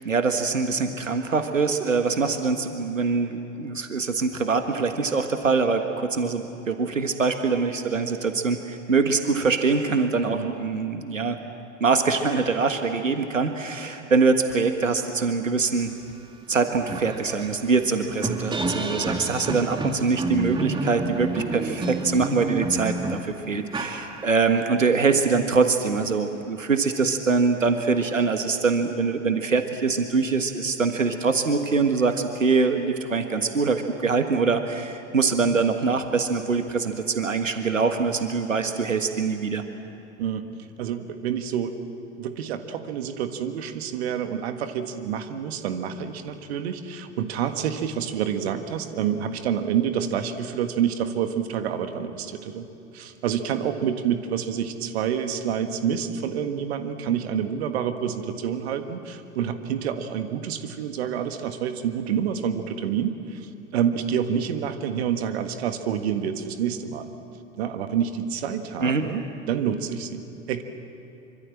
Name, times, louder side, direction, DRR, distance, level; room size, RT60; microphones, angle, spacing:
voice 1, 0.0-11.4 11.8-15.9 16.5-39.6 68.8-69.1, right 4 dB, 80° right, 7 dB, 1.6 m, -24 dB
sound 1, 16.1-16.2 16.5-24.6, right 2 dB, 10° right, 2.0 m, -30 dB
voice 2, 40.8-41.7 42.2-52.7 52.9-67.1 67.6-70.6, right 8 dB, 55° right, 8 dB, 1.7 m, -28 dB
26.0 x 25.0 x 7.6 m, 2.9 s
figure-of-eight pair, 90°, 38 cm